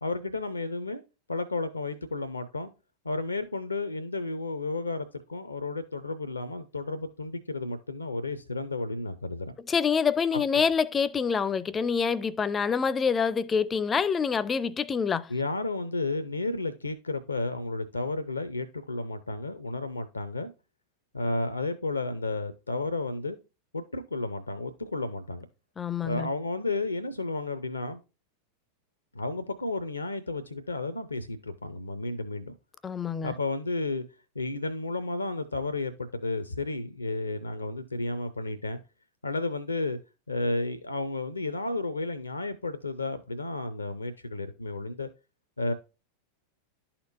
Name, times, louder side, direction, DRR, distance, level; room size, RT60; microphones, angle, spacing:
voice 1, 0.0-1.0 1.3-2.7 3.0-9.5 10.3-10.6 15.3-20.5 21.1-23.4 23.7-25.5 26.0-28.0 29.1-32.5 33.2-34.0 34.4-38.8 39.2-40.0 40.3-45.1 45.6-45.7, left 2 dB, 80° left, 0.5 m, -32 dB
voice 2, 9.7-15.3 25.8-26.3 32.8-33.3, left 6 dB, 20° left, 0.4 m, -26 dB
11.5 x 4.3 x 2.5 m
figure-of-eight pair, 90°, 0 cm